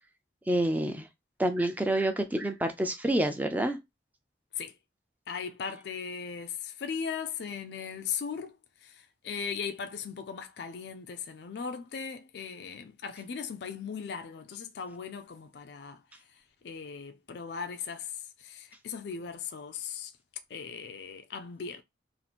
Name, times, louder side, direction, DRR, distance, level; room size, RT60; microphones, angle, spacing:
voice 1, 0.5-1.1 1.4-3.8, right 1 dB, 10° right, 0.4 m, -28 dB
voice 2, 5.3-8.5 8.8-16.0 16.6-20.1 20.5-21.8, left 6 dB, 65° left, 0.4 m, -38 dB
2.8 x 2.5 x 4.1 m
head